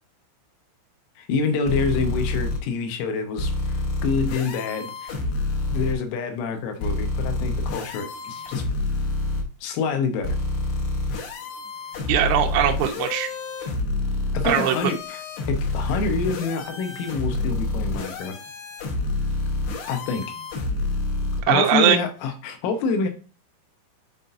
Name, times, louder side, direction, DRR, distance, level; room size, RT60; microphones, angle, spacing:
voice 1, 1.2-5.1 5.7-8.6 9.6-10.4 14.3-15.2 15.5-18.4 19.9-20.3 21.5-23.1, left 5 dB, 90° left, 6 dB, 3.6 m, -27 dB
sound 1, 1.7-2.6 3.4-5.9 6.8-9.4 10.2-21.4, left 2 dB, 70° left, 2.6 m, -28 dB
voice 2, 12.1-13.3 14.4-14.9 21.5-22.0, right 10 dB, 85° right, 2 dB, 2.2 m, -20 dB
10.5 x 4.1 x 2.6 m, 0.34 s
omnidirectional pair, 5.5 m